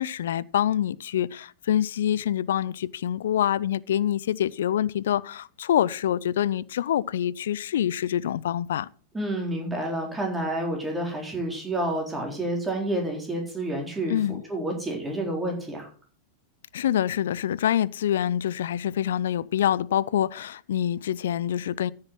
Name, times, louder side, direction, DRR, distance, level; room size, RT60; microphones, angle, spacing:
voice 1, 0.0-8.9 14.1-14.4 16.7-21.9, left 10 dB, 65° left, 0.5 m, -26 dB
voice 2, 9.1-15.9, right 1 dB, 10° right, 3.9 m, -29 dB
14.0 x 6.5 x 6.0 m
figure-of-eight pair, 95°, 0 cm